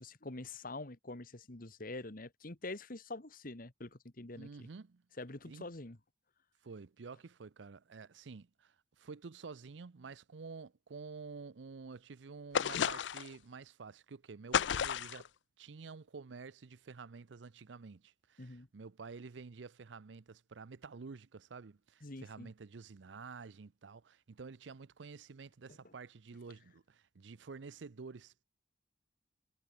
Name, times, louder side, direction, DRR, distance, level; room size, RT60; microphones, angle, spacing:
voice 1, 0.0-4.7 5.2-6.0 18.4-18.7 22.0-22.5, left 2 dB, 50° left, 1.8 m, -45 dB
voice 2, 4.4-5.0 5.4-5.7 6.6-15.3 15.6-28.4, right 4 dB, 80° right, 0.6 m, -50 dB
sound 1, 12.5-13.4 14.5-15.3, left 8 dB, 75° left, 0.5 m, -32 dB
head